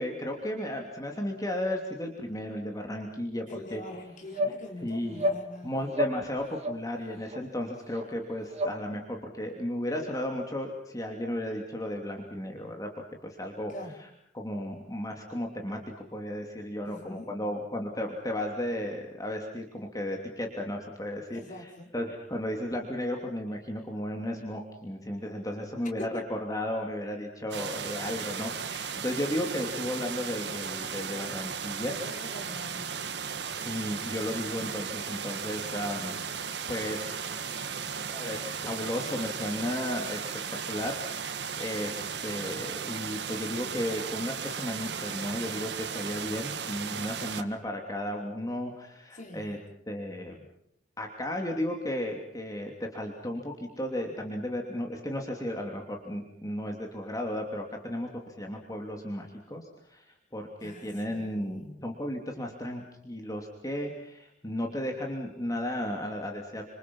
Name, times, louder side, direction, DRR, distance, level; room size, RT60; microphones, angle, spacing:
voice 1, 0.0-3.8 4.4-4.5 4.8-5.3 5.6-13.7 14.0-14.1 14.3-31.9 33.6-36.2 36.7-37.4 38.1-40.3 40.7-49.6 49.9-50.4 51.0-66.6, left 1 dB, 20° left, 2 dB, 3.0 m, -34 dB
voice 2, 3.5-5.7 13.7-14.0 16.8-17.3 21.3-21.9 26.0-26.3 31.9-33.2 49.1-49.6 60.6-61.8, left 1 dB, 45° left, 2 dB, 4.7 m, -44 dB
sound 1, 4.3-4.6 5.1-5.4 5.9-6.2 6.6-6.8 7.3-7.4 7.9-8.0 8.5-8.8, equal, 40° right, 3.5 m, -29 dB
sound 2, 27.5-47.4, right 6 dB, 70° right, 1.7 m, -36 dB
29.0 x 27.5 x 5.6 m, 0.74 s
head